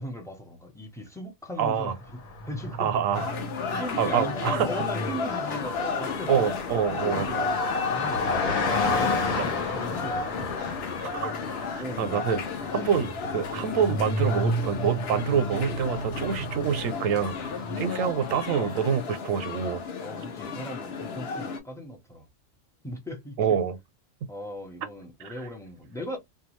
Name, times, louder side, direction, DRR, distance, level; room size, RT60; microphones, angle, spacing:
voice 1, 0.0-2.2 2.4-2.9 3.2-3.3 3.7-6.3 6.9-7.5 7.9-10.5 11.8-12.4 20.0-22.3 22.8-23.4 24.3-26.2, equal, 5° left, 0.5 m, -38 dB
voice 2, 1.6-1.9 2.8-3.3 3.7-4.7 6.3-7.4 9.4-9.5 11.1-11.3 12.0-12.4 12.7-19.8 23.4-23.8 25.2-25.3, right 7 dB, 80° right, 1.0 m, -26 dB
Car passing by, 2.0-18.1, left 2 dB, 85° left, 1.3 m, -33 dB
sound 1, 3.1-21.6, left 4 dB, 60° left, 0.8 m, -33 dB
2.6 x 2.3 x 2.9 m
omnidirectional pair, 1.4 m